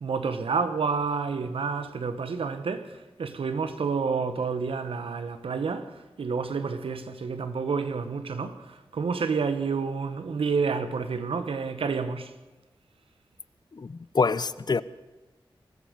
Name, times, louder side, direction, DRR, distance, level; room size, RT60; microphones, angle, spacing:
voice 1, 0.0-12.3, right 5 dB, 85° right, 1.1 m, -29 dB
voice 2, 13.7-14.8, left 4 dB, 50° left, 0.6 m, -26 dB
20.5 x 13.5 x 5.2 m
cardioid pair, 50°, 9 cm